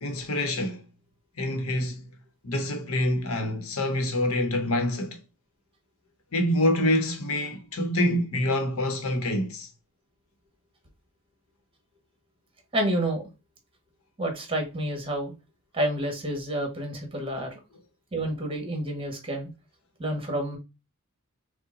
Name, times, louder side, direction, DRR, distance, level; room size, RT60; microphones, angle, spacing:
voice 1, 0.0-0.8 1.4-2.1 2.4-5.2 6.3-9.7, left 1 dB, 70° left, 0.8 m, -26 dB
voice 2, 12.7-13.2 14.2-15.3 15.7-17.6 18.1-19.5 20.0-20.6, right 1 dB, 25° right, 1.3 m, -29 dB
5.6 x 2.1 x 3.7 m
head